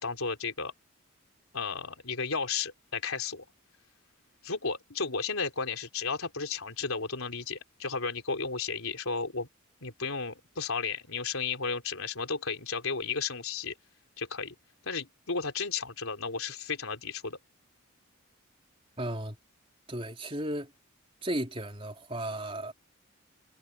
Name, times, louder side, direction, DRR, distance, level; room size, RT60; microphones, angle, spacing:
voice 1, 0.0-0.7 1.5-3.4 4.4-9.5 9.8-13.7 14.2-14.5 14.9-17.4, left 5 dB, 90° left, 3.9 m, -33 dB
voice 2, 19.0-19.4 19.9-20.7 21.2-22.7, right 1 dB, 25° right, 3.9 m, -34 dB
head